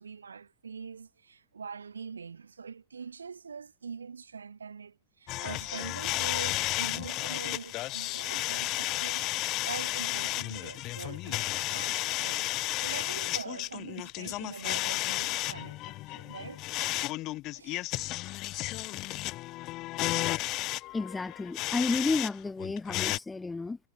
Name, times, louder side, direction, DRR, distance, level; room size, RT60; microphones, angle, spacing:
voice 1, 0.0-12.5 12.8-15.8 16.1-16.6 17.2-17.9, right 6 dB, 75° right, 1.5 m, -43 dB
sound 1, 5.3-22.3 22.6-23.2, left 18 dB, 40° left, 0.5 m, -33 dB
voice 2, 20.9-23.8, left 3 dB, 10° left, 2.2 m, -31 dB
figure-of-eight pair, 90°, 0 cm